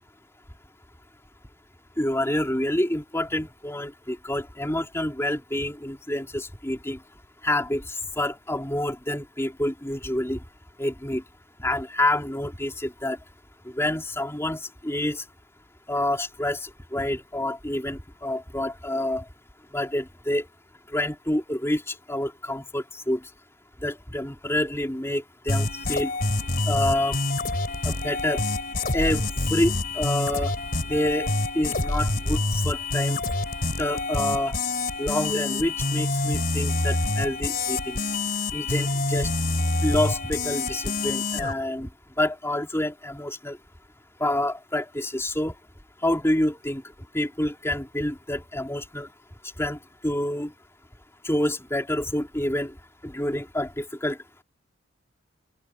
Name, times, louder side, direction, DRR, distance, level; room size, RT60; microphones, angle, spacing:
voice 1, 2.0-7.0 7.4-10.4 10.8-11.2 11.6-13.2 13.7-15.2 15.9-19.2 19.7-20.5 20.9-23.2 23.8-26.1 26.7-27.2 27.8-28.4 28.9-30.5 30.9-31.3 31.6-33.2 33.8-34.6 35.0-38.0 38.5-39.3 39.8-41.9 42.2-43.6 44.2-45.5 46.0-46.8 47.1-49.1 49.6-50.5 51.2-52.7 53.0-54.2, left 1 dB, 15° left, 3.5 m, -27 dB
sound 1, 25.5-41.5, left 2 dB, 50° left, 3.5 m, -27 dB
open air
head